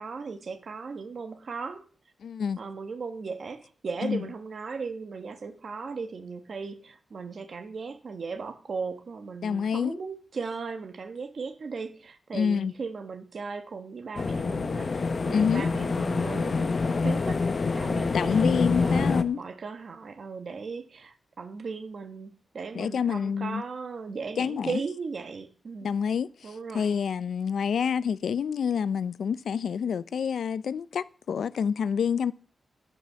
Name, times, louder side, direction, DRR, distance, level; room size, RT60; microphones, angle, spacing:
voice 1, 0.0-1.9 2.6-17.5 17.7-25.9 26.4-26.9, right 4 dB, 45° right, 1.6 m, -37 dB
voice 2, 2.2-2.6 4.0-4.3 9.4-10.0 12.3-12.7 15.3-15.7 18.1-19.4 22.7-23.6 24.4-24.8 25.8-32.3, left 7 dB, 75° left, 0.6 m, -28 dB
sound 1, 14.1-19.2, left 4 dB, 35° left, 1.0 m, -26 dB
12.5 x 9.3 x 6.9 m
wide cardioid pair, 180°, 0 cm